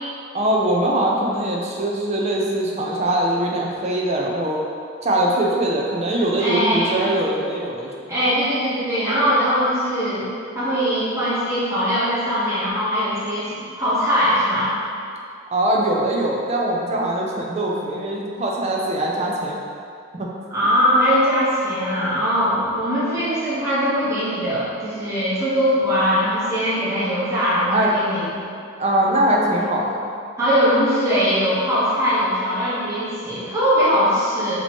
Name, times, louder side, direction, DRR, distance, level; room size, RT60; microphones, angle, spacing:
voice 1, 0.3-4.6 5.0-7.9 15.5-19.6 20.2-20.3 27.7-27.9 28.8-30.1, right 1 dB, 35° right, -2 dB, 0.4 m, -22 dB
voice 2, 6.4-7.0 8.1-10.3 10.5-13.5 13.8-14.7 20.5-28.3 30.4-34.6, equal, 15° right, -12 dB, 1.0 m, -21 dB
2.9 x 2.9 x 4.2 m, 2.3 s
head